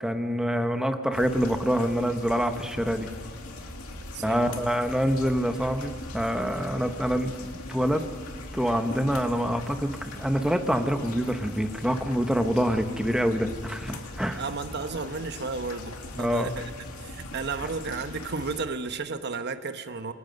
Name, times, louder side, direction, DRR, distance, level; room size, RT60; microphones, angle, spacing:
voice 1, 0.0-3.1 4.2-8.0 8.5-14.4 16.1-16.5, equal, 5° right, 6 dB, 1.1 m, -26 dB
Hail and rain, 1.1-18.6, left 2 dB, 90° left, 2.3 m, -41 dB
voice 2, 4.1-4.7 14.4-16.7 17.0-20.1, right 4 dB, 50° right, 9 dB, 1.1 m, -33 dB
27.0 x 21.0 x 5.4 m, 2.2 s
head